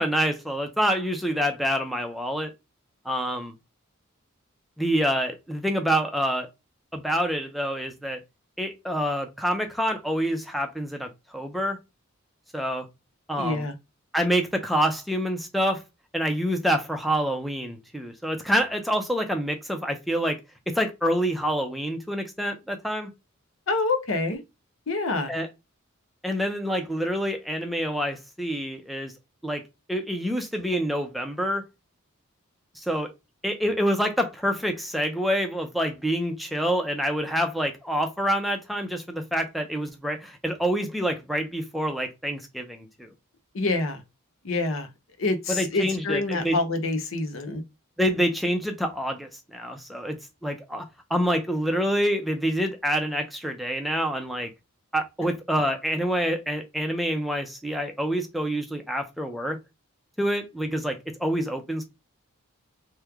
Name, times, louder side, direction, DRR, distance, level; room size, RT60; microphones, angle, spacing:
voice 1, 0.0-2.5 3.1-3.5 4.8-6.5 6.9-8.2 8.6-11.8 12.5-12.9 13.3-13.7 14.1-15.8 16.1-20.4 20.7-23.1 25.3-25.5 26.2-29.1 29.4-29.6 29.9-31.6 32.8-33.1 33.4-43.1 45.5-46.6 48.0-50.2 50.4-50.8 51.1-54.5 54.9-59.6 60.2-61.8, equal, ahead, 0.5 m, -27 dB
voice 2, 13.4-13.7 23.7-24.4 24.9-25.3 43.5-44.0 44.4-44.9 45.2-47.6, left 2 dB, 65° left, 0.7 m, -26 dB
3.1 x 2.1 x 3.5 m
head